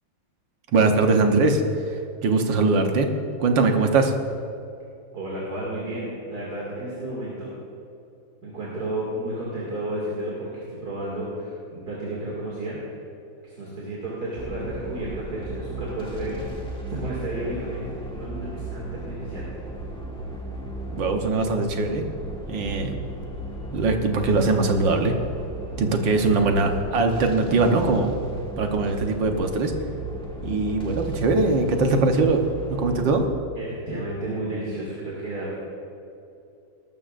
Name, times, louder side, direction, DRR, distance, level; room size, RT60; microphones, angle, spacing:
voice 1, 0.7-1.6 2.2-3.1 3.4-4.1 20.9-22.1 22.5-22.9 23.7-25.1 25.8-28.1 28.6-29.7 30.4-32.4 32.8-33.3, right 3 dB, 70° right, 4 dB, 1.8 m, -21 dB
voice 2, 5.1-7.5 8.4-12.8 13.4-19.5 26.1-26.6 33.5-35.6, right 1 dB, 55° right, -6 dB, 2.9 m, -32 dB
sound 1, 14.4-33.2, right 1 dB, 5° left, 1.2 m, -35 dB
20.0 x 12.5 x 2.5 m, 2.7 s
omnidirectional pair, 2.1 m